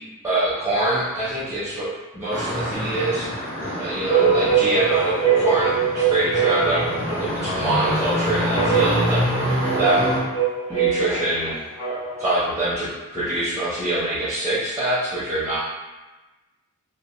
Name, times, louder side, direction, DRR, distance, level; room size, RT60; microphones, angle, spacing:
voice 1, 0.2-3.3 3.8-6.8 7.2-10.1 10.7-11.5 12.2-15.6, right 1 dB, 10° right, -11 dB, 0.5 m, -24 dB
sound 1, 2.3-10.2, equal, 30° left, 0.7 m, -26 dB
sound 2, 4.1-12.3, right 6 dB, 80° left, 1.2 m, -23 dB
2.4 x 2.2 x 2.9 m, 1.2 s
head